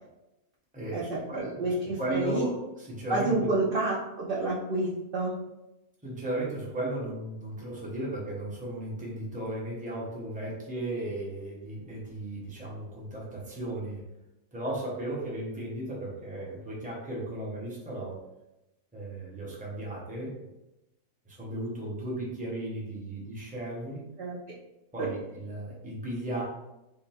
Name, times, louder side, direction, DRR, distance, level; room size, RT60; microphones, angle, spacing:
voice 1, 0.7-1.7 2.0-3.5 6.0-14.0 14.5-18.2 18.9-20.4 21.3-24.1 24.9-26.4, right 1 dB, 5° right, -5 dB, 0.7 m, -35 dB
voice 2, 1.3-2.5 3.1-5.3 24.2-24.3 25.0-25.1, right 2 dB, 55° right, -5 dB, 0.6 m, -29 dB
3.7 x 2.1 x 4.2 m, 0.94 s
omnidirectional pair, 1.5 m